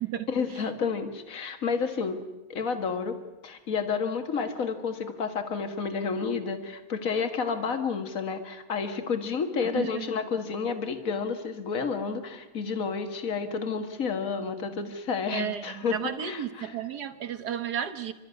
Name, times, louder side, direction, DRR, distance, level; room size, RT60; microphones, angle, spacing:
voice 1, 0.3-2.2 2.5-3.2 3.4-16.7, left 5 dB, 45° left, 7 dB, 2.0 m, -30 dB
voice 2, 9.7-10.1 15.3-18.1, right 9 dB, 55° right, 10 dB, 1.7 m, -33 dB
29.0 x 13.0 x 9.7 m, 1.0 s
omnidirectional pair, 2.2 m